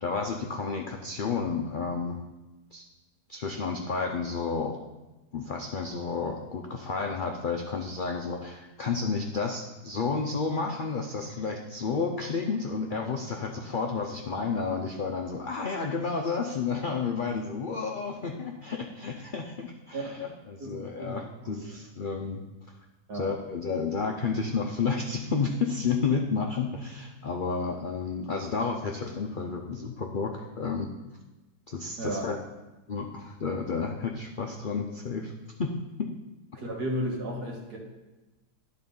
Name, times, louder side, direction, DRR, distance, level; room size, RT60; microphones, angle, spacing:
voice 1, 0.0-2.2 2.7-2.8 3.3-4.8 5.3-22.4 23.1-30.9 31.7-32.4 32.9-35.3 35.6-35.7 36.0-36.1, left 5 dB, 80° left, 2 dB, 0.4 m, -31 dB
voice 2, 19.9-20.3 20.6-21.6 23.1-23.3 32.0-32.3 36.5-37.8, equal, 75° right, -1 dB, 2.1 m, -34 dB
11.0 x 4.2 x 5.4 m, 1.1 s
omnidirectional pair, 1.7 m